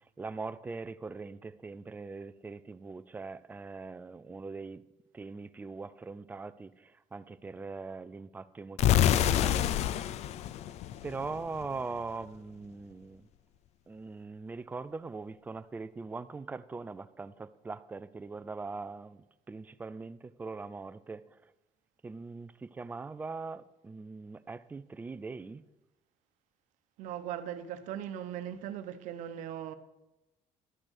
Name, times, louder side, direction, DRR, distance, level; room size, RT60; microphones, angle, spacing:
voice 1, 0.2-4.8 5.1-9.7 11.0-13.3 13.9-21.2 22.0-25.6, right 4 dB, 15° right, 0.4 m, -41 dB
sound 1, 8.8-11.6, left 11 dB, 60° left, 0.4 m, -27 dB
voice 2, 27.0-29.7, right 10 dB, 85° right, 0.9 m, -39 dB
12.0 x 6.3 x 6.3 m
cardioid pair, 145°, 13 cm